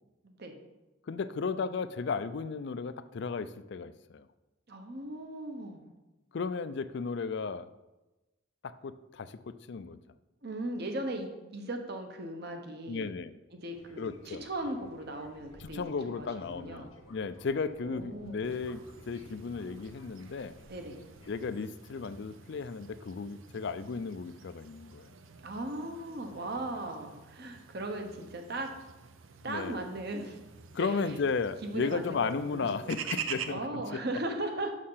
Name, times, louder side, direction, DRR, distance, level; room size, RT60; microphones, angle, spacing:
voice 1, 0.2-0.6 4.7-5.9 10.4-13.1 13.5-16.9 17.8-18.6 20.7-21.0 25.4-28.7 29.4-30.4 30.8-31.2 31.6-34.7, right 1 dB, 55° right, 5 dB, 1.0 m, -38 dB
voice 2, 1.1-4.2 6.3-7.7 8.6-10.0 12.9-13.3 14.0-14.4 15.6-20.5 21.3-25.1 29.4-29.7 30.7-33.8, left 4 dB, 60° left, 13 dB, 0.4 m, -35 dB
Fixed-wing aircraft airplane, 13.7-21.6, left 1 dB, 90° left, 1.4 m, -55 dB
sound 1, 18.4-33.5, right 7 dB, 80° right, 0.6 m, -47 dB
6.6 x 6.5 x 5.6 m, 1.0 s
head